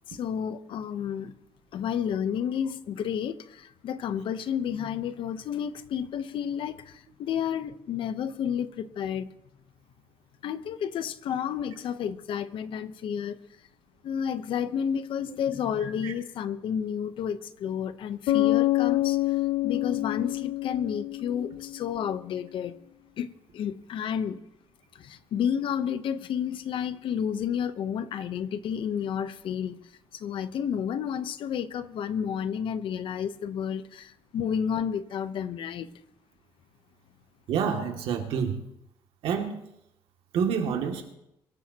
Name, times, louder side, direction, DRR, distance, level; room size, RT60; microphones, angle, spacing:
voice 1, 0.1-1.3 1.7-9.3 10.4-13.4 14.0-22.8 23.2-24.4 24.9-29.8 30.1-35.9, left 8 dB, 65° left, 12 dB, 0.9 m, -31 dB
voice 2, 15.8-16.1 37.5-38.6 39.2-39.6 40.3-41.1, right 7 dB, 85° right, 2 dB, 2.4 m, -28 dB
Bass guitar, 18.3-21.9, left 16 dB, 85° left, 0.5 m, -26 dB
23.5 x 13.0 x 2.9 m, 0.83 s
cardioid pair, 135°, 9 cm